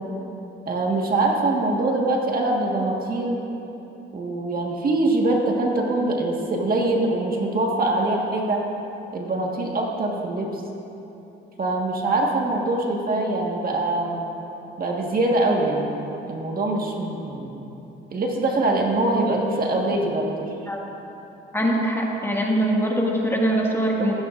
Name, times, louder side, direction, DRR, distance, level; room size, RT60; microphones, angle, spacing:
voice 1, 0.6-3.4 4.1-8.6 9.1-10.6 11.6-14.2 14.8-17.6 18.1-20.3, right 2 dB, 45° right, -1 dB, 1.7 m, -23 dB
voice 2, 21.5-24.1, right 1 dB, 10° left, -3 dB, 2.0 m, -22 dB
16.0 x 14.0 x 2.6 m, 3.0 s
cardioid pair, 90°, 20 cm